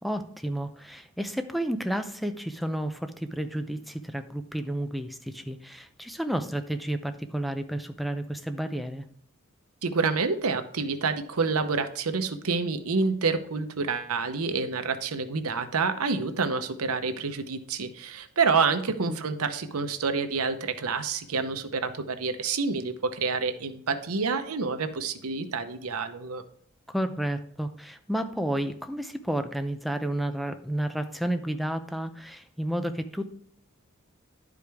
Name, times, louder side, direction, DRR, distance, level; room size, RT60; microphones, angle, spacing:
voice 1, 0.0-9.0 19.1-19.2 26.9-33.3, right 1 dB, ahead, 7 dB, 0.5 m, -31 dB
voice 2, 9.8-26.4, right 4 dB, 85° right, 9 dB, 0.8 m, -28 dB
11.0 x 4.9 x 3.5 m, 0.64 s
head